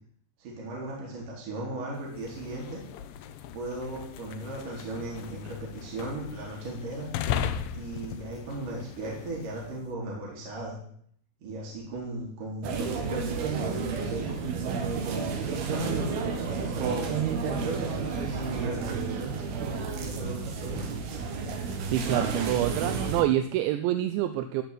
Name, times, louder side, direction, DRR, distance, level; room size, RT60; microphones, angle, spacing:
voice 1, 0.4-2.8 3.5-7.1 7.7-10.7 11.4-14.3 15.0-17.2 17.6-19.1 19.6-20.8, right 2 dB, 45° right, -3 dB, 5.3 m, -37 dB
sound 1, 2.0-9.8, left 8 dB, 90° left, 2.0 m, -37 dB
sound 2, 12.6-23.2, right 5 dB, 60° right, 3.4 m, -31 dB
voice 2, 21.8-24.6, right 13 dB, 80° right, 9 dB, 3.0 m, -27 dB
16.5 x 7.0 x 9.1 m, 0.63 s
omnidirectional pair, 5.3 m